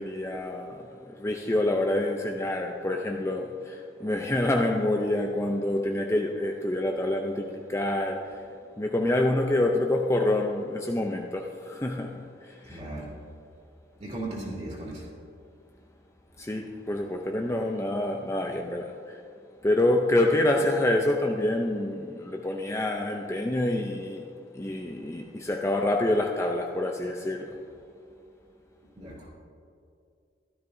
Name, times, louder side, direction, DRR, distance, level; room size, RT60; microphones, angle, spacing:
voice 1, 0.0-8.4 8.8-12.2 12.5-12.8 16.4-19.2 19.6-24.3 24.5-27.6, left 1 dB, 15° left, 2 dB, 0.5 m, -27 dB
voice 2, 12.6-13.1 14.0-15.1 29.0-29.3, right 2 dB, 35° right, -3 dB, 2.7 m, -37 dB
15.5 x 12.5 x 2.6 m, 2.4 s
head